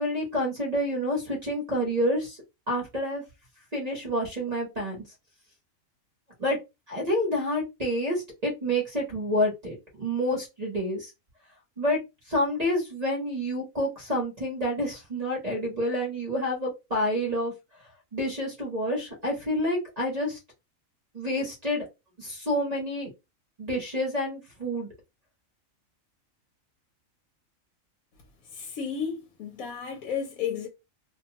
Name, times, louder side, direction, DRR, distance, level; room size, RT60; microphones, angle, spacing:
voice 1, 0.0-2.4 2.7-3.2 3.7-5.0 6.4-6.6 6.9-11.1 11.8-12.0 12.3-17.5 18.1-20.4 21.1-21.8 22.2-23.1 23.6-24.9, equal, 35° right, 0.9 m, -28 dB
voice 2, 28.5-30.7, left 7 dB, 80° left, 1.0 m, -33 dB
2.6 x 2.2 x 2.8 m
omnidirectional pair, 1.4 m